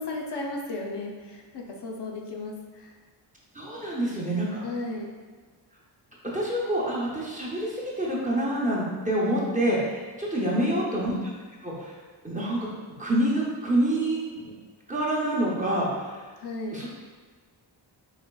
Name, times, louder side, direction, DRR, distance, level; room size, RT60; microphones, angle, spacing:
voice 1, 0.0-2.9 4.6-5.1 10.5-11.1 16.4-16.8, left 2 dB, 65° left, -1 dB, 0.6 m, -35 dB
voice 2, 3.5-4.6 6.3-11.1 11.6-11.9 12.2-12.6 13.0-14.5 14.9-16.1 16.7-16.9, right 1 dB, 15° right, -6 dB, 0.6 m, -27 dB
4.9 x 2.9 x 2.3 m, 1.4 s
wide cardioid pair, 150°, 45 cm